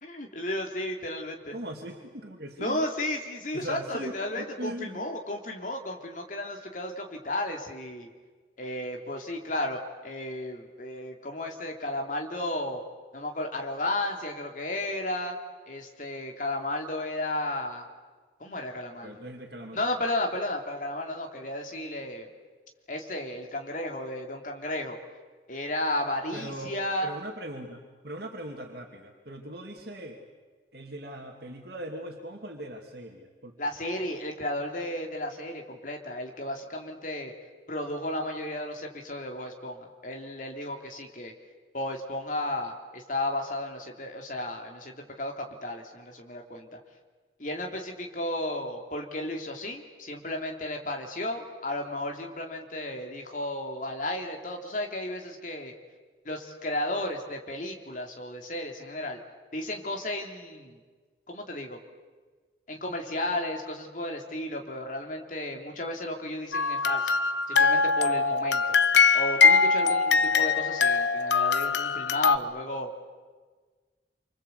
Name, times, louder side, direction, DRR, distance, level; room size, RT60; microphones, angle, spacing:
voice 1, 0.0-1.5 2.6-8.1 8.6-12.8 13.1-15.3 15.7-17.9 18.4-19.2 19.7-22.3 22.9-25.0 25.5-27.1 33.6-37.3 37.7-41.3 41.7-46.8 47.4-55.7 56.2-59.2 59.5-60.8 61.3-61.8 62.7-67.2 67.5-68.8 69.1-72.9, left 1 dB, 45° left, 2 dB, 3.2 m, -33 dB
voice 2, 1.5-2.8 3.5-5.1 19.0-19.8 26.3-30.2 30.7-33.6, right 1 dB, 55° right, 1 dB, 2.6 m, -40 dB
sound 1, 66.5-72.4, left 5 dB, 70° left, 0.8 m, -22 dB
28.0 x 25.5 x 8.3 m, 1.4 s
head